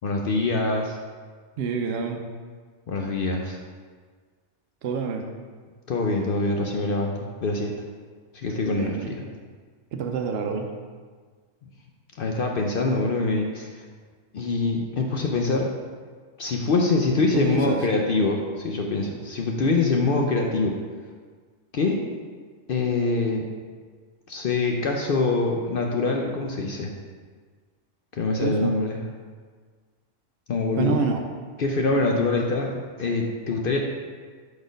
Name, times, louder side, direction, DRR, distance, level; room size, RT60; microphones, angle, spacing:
voice 1, 0.0-1.0 2.9-3.6 5.9-7.7 8.3-9.2 12.2-13.8 14.3-15.7 16.4-20.8 21.7-22.0 22.7-23.4 24.3-26.9 28.1-29.0 30.5-31.0 31.6-33.8, left 3 dB, 60° left, 1 dB, 0.6 m, -24 dB
voice 2, 1.6-2.2 4.8-5.2 8.7-9.2 9.9-10.7 17.3-17.9 28.4-28.7 30.8-31.3, right 5 dB, 65° right, 3 dB, 0.7 m, -27 dB
5.2 x 4.1 x 5.1 m, 1.5 s
omnidirectional pair, 1.3 m